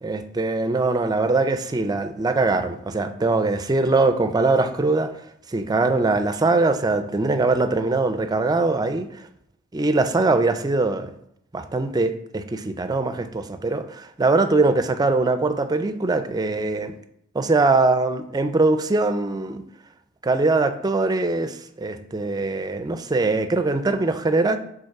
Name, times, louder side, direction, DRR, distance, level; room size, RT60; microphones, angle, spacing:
voice 1, 0.0-5.1 5.5-9.1 9.7-11.1 11.5-16.9 17.3-19.6 20.2-24.6, right 3 dB, 20° right, 9 dB, 0.4 m, -22 dB
5.3 x 4.0 x 5.8 m, 0.72 s
head